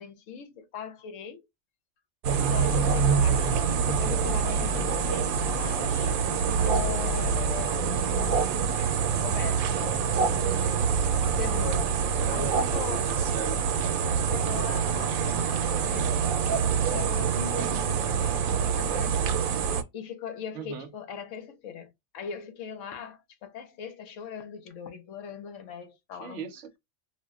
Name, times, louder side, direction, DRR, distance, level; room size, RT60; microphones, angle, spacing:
voice 1, 0.0-1.4 2.5-6.2 6.6-8.4 8.8-13.1 14.2-19.2 19.9-26.5, left 7 dB, 70° left, 0.9 m, -40 dB
sound 1, 2.2-19.8, right 6 dB, 90° right, 1.0 m, -26 dB
voice 2, 12.3-13.6 20.5-20.9 26.2-26.8, right 5 dB, 65° right, 1.0 m, -38 dB
2.5 x 2.1 x 3.4 m
omnidirectional pair, 1.4 m